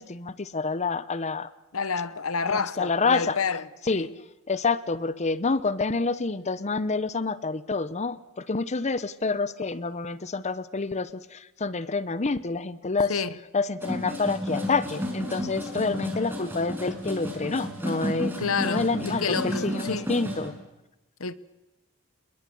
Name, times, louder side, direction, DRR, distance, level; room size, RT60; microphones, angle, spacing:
voice 1, 0.0-1.5 2.4-3.4 3.9-4.1 4.5-13.1 13.5-18.3 18.6-20.5, left 4 dB, 35° left, 0.8 m, -28 dB
voice 2, 1.7-3.6 3.9-4.1 13.1-13.3 18.4-20.1 21.2-21.3, left 5 dB, 85° left, 1.1 m, -29 dB
sound 1, 13.8-20.5, equal, 10° right, 6.0 m, -32 dB
28.0 x 21.5 x 7.0 m
head